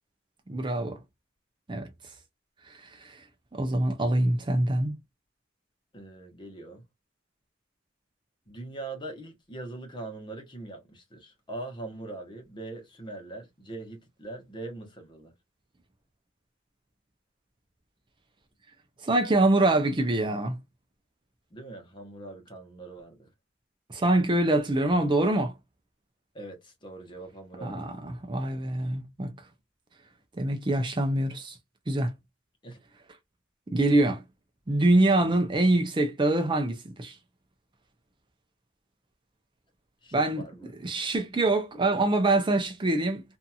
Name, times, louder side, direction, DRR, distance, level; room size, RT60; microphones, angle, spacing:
voice 1, 0.5-1.0 1.7-1.9 2.7-3.2 3.5-5.0 19.0-20.6 23.9-25.5 27.6-29.3 30.4-31.6 31.9-32.1 33.7-34.2 34.7-37.2 40.1-40.5 40.8-43.2, right 2 dB, 25° right, 0.5 m, -25 dB
voice 2, 5.9-6.8 8.5-15.3 21.5-23.3 26.3-27.9 32.6-32.8 35.3-35.4 40.0-40.7, right 2 dB, 25° left, 1.0 m, -42 dB
2.8 x 2.6 x 2.3 m
head